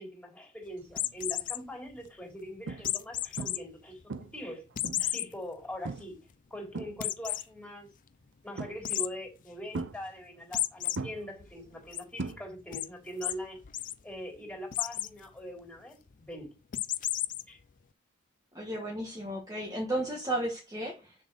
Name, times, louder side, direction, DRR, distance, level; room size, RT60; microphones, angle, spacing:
voice 1, 0.0-4.7 5.0-6.2 6.5-7.9 8.4-13.6 14.0-16.5 17.5-17.6, equal, 5° left, 3.5 m, -42 dB
sound 1, 0.9-1.6 2.8-3.6 4.0-4.1 4.8-5.3 5.7-5.8 6.1-6.2 7.0-7.4 8.8-9.1 10.5-11.0 11.4-12.0 12.7-12.9 13.2-13.3 13.6-13.9 14.7-15.1 16.7-17.4, left 13 dB, 40° left, 0.4 m, -32 dB
sound 2, 1.0-1.3 1.9-2.1 2.7-3.1 3.4-3.8 4.1-5.2 5.8-6.2 6.5-7.4 8.6-9.1 9.7-10.6 10.9-12.8 13.1-13.5 15.6-15.7, right 3 dB, 55° right, 0.7 m, -40 dB
voice 2, 18.5-21.1, right 1 dB, 15° right, 1.5 m, -34 dB
6.7 x 4.2 x 6.1 m
head